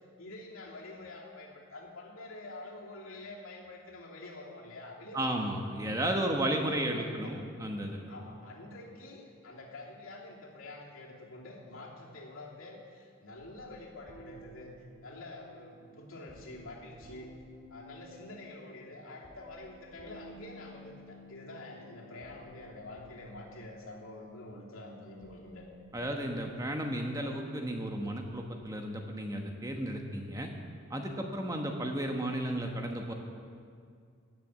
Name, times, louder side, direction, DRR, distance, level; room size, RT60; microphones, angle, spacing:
voice 1, 0.2-5.6 6.2-7.3 8.1-14.7 15.0-17.3 17.7-25.6, left 2 dB, 85° left, -3 dB, 3.0 m, -47 dB
voice 2, 5.1-8.1 25.9-30.5 30.9-33.1, right 1 dB, 15° right, 2 dB, 1.1 m, -33 dB
sound 1, 13.4-28.6, equal, 75° right, 2.6 m, -55 dB
17.5 x 6.9 x 8.1 m, 2.2 s
head